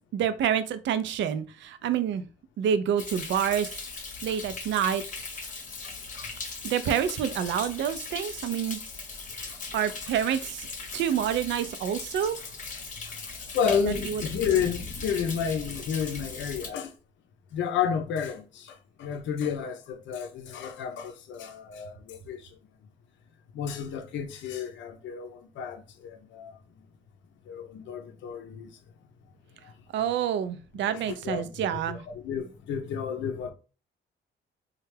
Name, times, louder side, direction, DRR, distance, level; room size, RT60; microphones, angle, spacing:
voice 1, 0.1-2.2 2.6-3.7 4.2-5.0 6.6-8.8 9.7-10.7 10.9-12.3 14.1-14.2 29.9-32.0, right 9 dB, 70° right, 0.4 m, -27 dB
Thunder, 3.0-16.7, left 4 dB, 40° left, 0.8 m, -39 dB
voice 2, 13.5-16.9 17.5-18.6 19.0-22.4 23.5-25.3 25.6-25.8 26.3-26.5 27.5-28.7 30.8-33.5, left 7 dB, 70° left, 0.6 m, -31 dB
3.2 x 2.3 x 3.2 m
cardioid pair, 90°, 20 cm